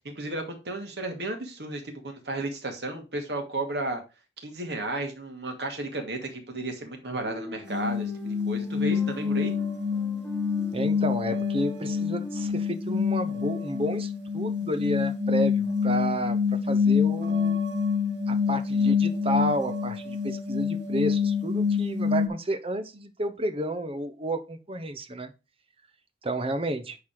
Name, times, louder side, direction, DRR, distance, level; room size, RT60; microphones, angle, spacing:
voice 1, 0.0-4.0 4.4-9.5, right 2 dB, 70° right, 4 dB, 2.3 m, -33 dB
sound 1, 7.2-12.5, left 1 dB, 5° left, 2.1 m, -44 dB
sound 2, 7.7-22.3, left 6 dB, 85° right, 1.2 m, -26 dB
voice 2, 10.7-16.4 16.6-17.6 18.3-25.3 26.2-27.0, right 1 dB, 35° right, 10 dB, 1.0 m, -31 dB
9.7 x 4.1 x 4.8 m, 0.28 s
head